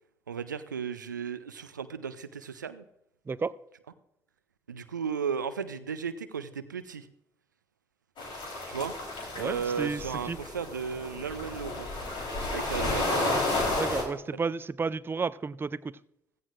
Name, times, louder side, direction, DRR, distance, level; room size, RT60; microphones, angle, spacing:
voice 1, 0.3-2.8 4.7-7.1 8.7-8.9 9.3-11.9 12.5-13.4 14.3-14.4, right 6 dB, 90° right, 13 dB, 0.4 m, -35 dB
sound 1, 8.2-14.0, left 2 dB, 55° left, 3.7 m, -32 dB
voice 2, 9.4-10.4 13.8-15.9, right 4 dB, 25° right, 17 dB, 0.5 m, -32 dB
16.0 x 14.5 x 2.5 m, 0.81 s
figure-of-eight pair, 45°, 10 cm